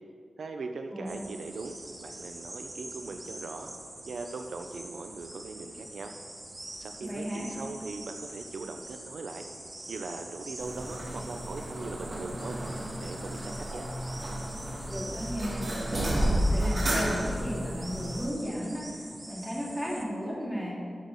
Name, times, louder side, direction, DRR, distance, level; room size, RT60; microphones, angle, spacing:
voice 1, 0.4-3.7 4.0-6.1 6.8-9.4 9.9-12.6 13.0-13.9, right 3 dB, 80° right, 5 dB, 0.6 m, -40 dB
sound 1, 1.1-20.0, right 1 dB, 25° right, 1.1 m, -45 dB
voice 2, 7.0-7.5 14.9-15.7 16.1-19.0 19.3-20.7, equal, ahead, -6 dB, 2.5 m, -34 dB
sound 2, 10.6-18.3, equal, 50° right, 2.1 m, -32 dB
12.5 x 6.5 x 4.1 m, 2.1 s
wide cardioid pair, 110°, 0 cm